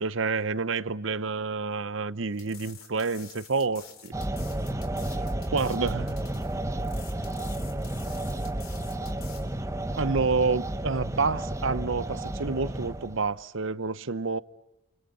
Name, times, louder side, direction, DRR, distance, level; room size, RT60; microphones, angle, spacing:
voice 1, 0.0-4.1 5.5-6.1 10.0-14.4, right 4 dB, 60° right, 0.8 m, -28 dB
sound 1, 2.3-9.4, left 8 dB, 75° left, 3.9 m, -49 dB
sound 2, 4.1-13.3, right 1 dB, 15° right, 0.9 m, -32 dB
voice 2, 5.0-6.2 6.9-9.2, equal, 5° left, 6.3 m, -53 dB
29.5 x 28.5 x 5.4 m
head